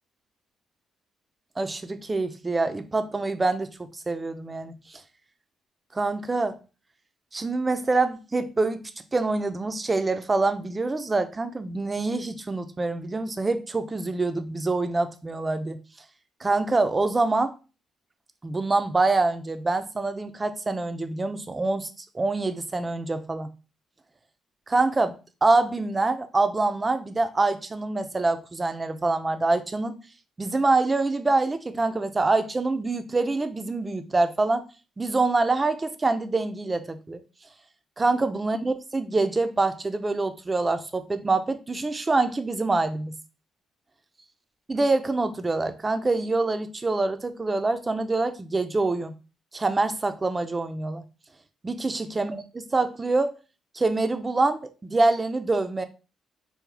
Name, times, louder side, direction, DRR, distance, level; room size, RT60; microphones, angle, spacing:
voice 1, 1.6-5.0 5.9-6.6 7.3-8.8 9.1-15.8 16.4-17.5 18.4-21.9 22.1-23.5 24.7-25.2 25.4-30.0 30.4-34.7 35.0-37.2 38.0-43.1 44.7-49.1 49.5-51.0 51.6-53.3 53.7-55.8, right 3 dB, 25° right, 0.5 m, -25 dB
4.8 x 2.3 x 3.5 m
cardioid pair, 90°, 0 cm